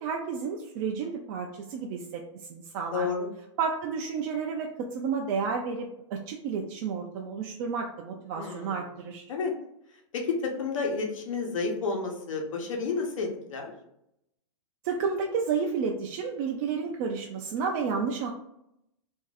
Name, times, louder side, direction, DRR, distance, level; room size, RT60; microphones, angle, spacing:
voice 1, 0.0-2.2 2.5-3.1 3.6-9.2 14.8-18.3, right 5 dB, 40° right, 1 dB, 0.4 m, -31 dB
voice 2, 2.9-3.3 8.3-8.9 9.3-9.5 10.1-13.7, left 4 dB, 85° left, 1 dB, 1.0 m, -31 dB
2.6 x 2.4 x 4.0 m, 0.79 s
hypercardioid pair, 145°, 16 cm